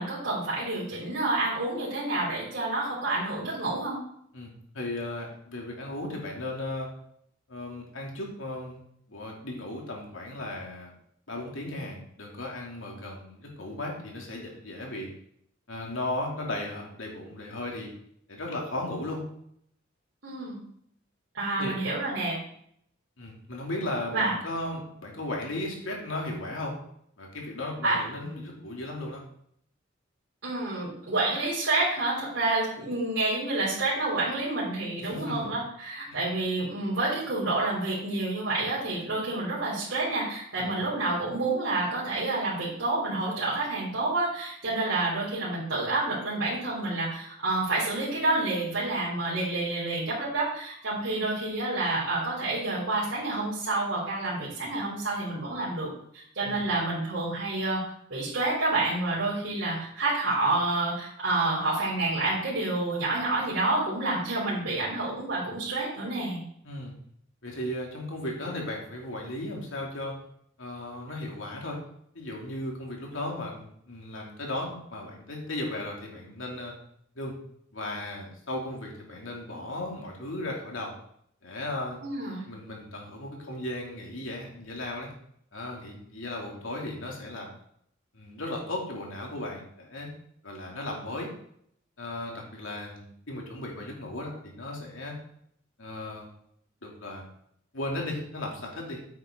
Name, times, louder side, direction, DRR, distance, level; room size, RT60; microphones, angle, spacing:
voice 1, 0.0-4.0 20.2-20.6 21.3-22.4 24.1-24.3 27.8-28.3 30.4-57.8 58.1-66.4 82.0-82.4, right 2 dB, 70° right, -9 dB, 3.8 m, -29 dB
voice 2, 4.3-6.9 7.5-8.8 9.1-10.9 11.3-15.1 15.7-17.9 18.3-19.2 21.6-21.8 23.2-26.7 27.2-29.2 35.0-35.5 36.1-36.2 40.6-40.7 56.4-56.7 66.6-66.9 67.4-70.1 70.6-71.8 72.1-76.7 77.2-77.3 77.7-80.9 81.4-82.0 82.5-85.1 85.5-87.5 88.1-90.1 90.4-91.3 92.0-95.2 95.8-96.3 96.8-97.2 97.7-99.0, left 1 dB, 85° left, -1 dB, 2.8 m, -36 dB
9.3 x 8.4 x 3.8 m, 0.68 s
head